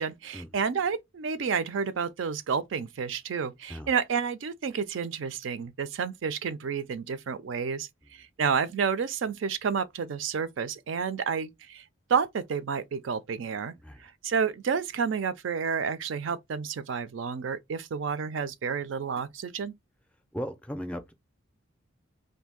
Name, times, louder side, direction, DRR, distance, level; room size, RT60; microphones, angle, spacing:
voice 1, 0.0-7.9 8.2-11.8 12.1-13.7 14.0-19.7, right 6 dB, 65° right, 0.4 m, -30 dB
voice 2, 20.3-21.1, equal, 5° left, 0.4 m, -36 dB
2.7 x 2.6 x 3.6 m
head